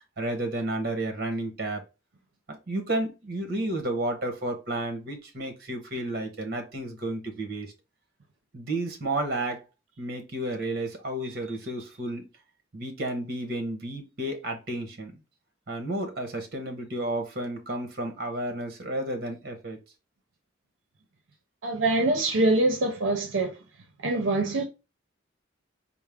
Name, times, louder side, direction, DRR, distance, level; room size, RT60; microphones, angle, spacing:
voice 1, 0.0-1.8 2.5-7.7 8.5-9.6 10.0-12.3 12.7-15.2 15.7-19.8, right 1 dB, 55° right, 1.0 m, -32 dB
voice 2, 21.6-23.5 24.0-24.6, right 2 dB, 80° right, 0.6 m, -24 dB
4.4 x 2.1 x 3.5 m
head